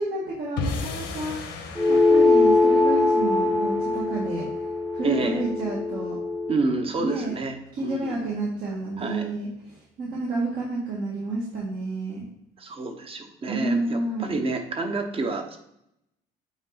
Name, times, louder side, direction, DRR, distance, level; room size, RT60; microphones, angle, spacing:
voice 1, 0.0-1.4 1.9-4.5 4.9-6.2 7.0-7.4 7.7-12.2 13.5-14.4, right 2 dB, 65° right, -6 dB, 1.9 m, -30 dB
sound 1, 0.6-6.9, left 4 dB, 90° left, 1.3 m, -37 dB
sound 2, 1.8-6.6, left 3 dB, 5° right, 0.8 m, -21 dB
voice 2, 5.0-5.4 6.5-8.2 9.0-9.3 12.6-15.6, right 3 dB, 35° right, 5 dB, 1.0 m, -29 dB
8.5 x 3.0 x 4.0 m, 0.79 s
cardioid pair, 110°, 17 cm